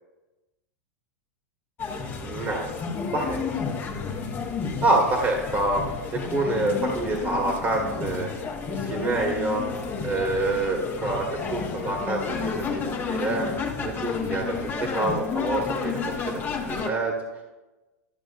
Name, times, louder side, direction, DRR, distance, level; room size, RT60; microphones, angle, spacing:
sound 1, 1.8-16.9, left 5 dB, 25° left, 1.0 m, -31 dB
voice 1, 2.2-2.7 3.1-3.4 4.8-5.8 6.1-9.6 10.0-13.7 14.0-16.4 16.7-17.1, right 2 dB, 25° right, 1 dB, 1.4 m, -27 dB
11.5 x 6.1 x 2.4 m, 1.1 s
hypercardioid pair, 120°, 8 cm